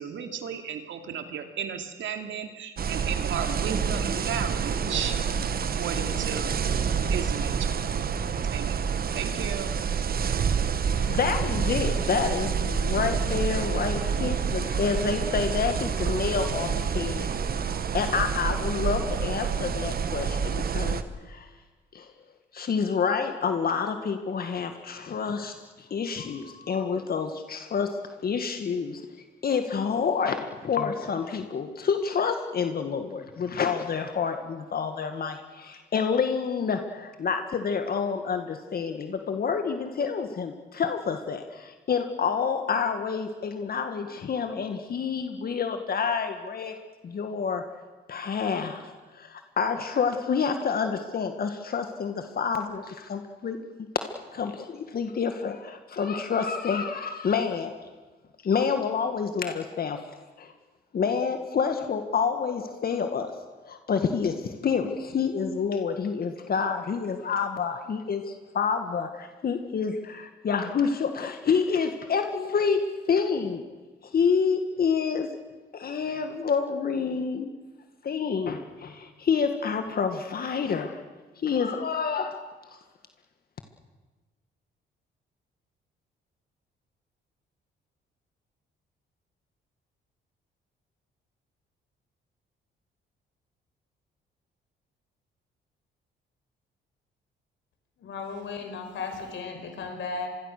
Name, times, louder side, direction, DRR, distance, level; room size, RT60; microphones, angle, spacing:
voice 1, 0.0-5.2 5.7-6.6 7.1-7.8 8.5-9.8, right 7 dB, 70° right, 6 dB, 2.7 m, -34 dB
sound 1, 2.8-21.0, right 6 dB, 50° right, 1.4 m, -28 dB
voice 2, 11.0-17.3 17.6-21.0 21.3-21.5 21.9-22.1 22.5-28.0 28.2-29.1 29.4-46.8 47.0-47.6 48.1-53.6 54.3-57.7 58.4-60.0 60.4-60.5 60.9-63.3 63.7-73.7 74.1-75.3 75.7-77.5 78.0-81.0 81.4-82.4, left 6 dB, 50° left, 7 dB, 1.9 m, -28 dB
voice 3, 98.0-100.3, left 4 dB, 70° left, 5 dB, 5.5 m, -35 dB
26.0 x 22.5 x 6.7 m, 1.3 s
cardioid pair, 90°, 20 cm